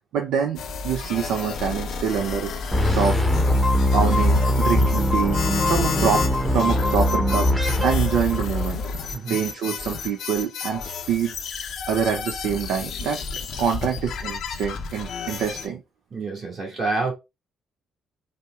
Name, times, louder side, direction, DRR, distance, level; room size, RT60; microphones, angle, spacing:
voice 1, 0.1-3.2 3.9-8.8 9.3-11.3 11.9-13.2 13.6-15.8, right 7 dB, 60° right, 0.4 m, -26 dB
sound 1, 0.6-9.1, left 1 dB, 80° left, 0.8 m, -35 dB
sound 2, 0.6-15.7, left 6 dB, 60° left, 0.5 m, -32 dB
sound 3, 2.7-8.9, left 1 dB, ahead, 0.8 m, -21 dB
voice 2, 16.1-17.1, right 3 dB, 45° right, 1.8 m, -27 dB
5.2 x 2.1 x 2.3 m
figure-of-eight pair, 40°, 0 cm